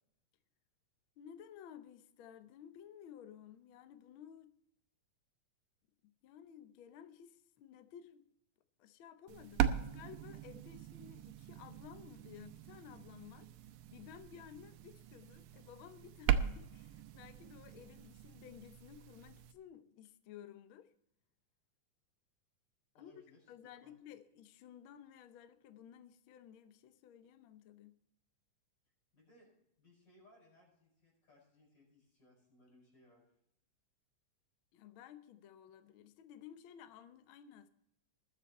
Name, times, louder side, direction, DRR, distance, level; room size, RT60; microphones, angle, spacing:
voice 1, 1.2-4.5 6.0-8.3 8.8-13.5 13.9-20.9 23.0-23.1 23.5-28.0 34.7-37.7, left 9 dB, 75° left, 1.2 m, -55 dB
sound 1, 9.3-19.5, right 10 dB, 80° right, 2.2 m, -40 dB
voice 2, 22.9-23.4 23.8-23.9 29.1-33.3, left 1 dB, 35° left, 7.1 m, -66 dB
20.0 x 7.5 x 4.2 m
omnidirectional pair, 3.4 m